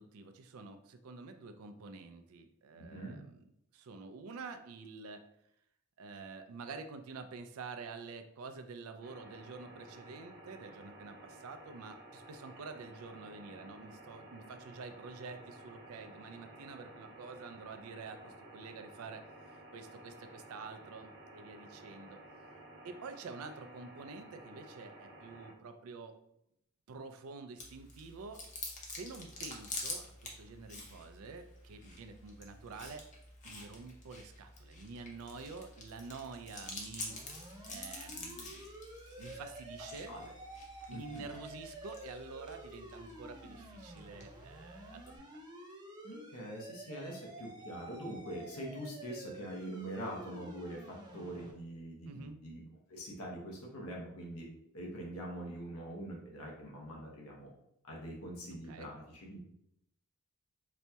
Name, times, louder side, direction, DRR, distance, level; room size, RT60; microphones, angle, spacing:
voice 1, 0.0-3.4 3.7-5.3 6.0-19.2 19.7-22.2 22.8-26.2 26.9-28.4 28.8-33.0 33.4-37.2 37.7-38.7 39.2-40.1 40.9-45.4 52.1-52.4 58.6-58.9, right 4 dB, 80° right, 7 dB, 0.4 m, -48 dB
voice 2, 2.7-3.2 40.1-40.2 40.9-41.2 46.0-52.6 52.9-54.5 54.7-57.5 57.9-59.4, right 1 dB, 90° left, -2 dB, 0.9 m, -44 dB
sound 1, 9.0-25.5, right 1 dB, 55° right, 0.8 m, -54 dB
Chewing mastication, 27.6-45.2, left 2 dB, 35° left, 0.6 m, -48 dB
sound 2, 37.1-51.5, right 1 dB, 20° right, 0.5 m, -50 dB
4.1 x 2.7 x 2.2 m, 0.76 s
head